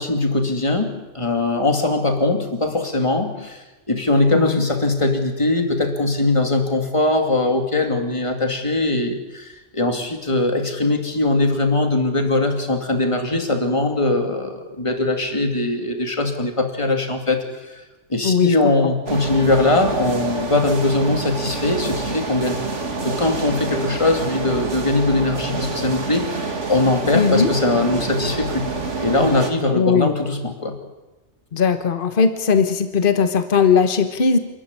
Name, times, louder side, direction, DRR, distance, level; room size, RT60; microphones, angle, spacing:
voice 1, 0.0-17.4 17.7-17.8 18.1-22.6 23.0-28.7 29.0-30.8, left 2 dB, 25° left, 4 dB, 2.8 m, -21 dB
voice 2, 4.3-4.6 18.2-18.5 27.1-27.5 29.7-30.1 31.5-34.4, left 5 dB, 50° left, 8 dB, 1.4 m, -18 dB
sound 1, 19.1-29.5, right 4 dB, 80° right, 2.6 m, -27 dB
27.5 x 14.5 x 9.9 m, 1.1 s
omnidirectional pair, 1.2 m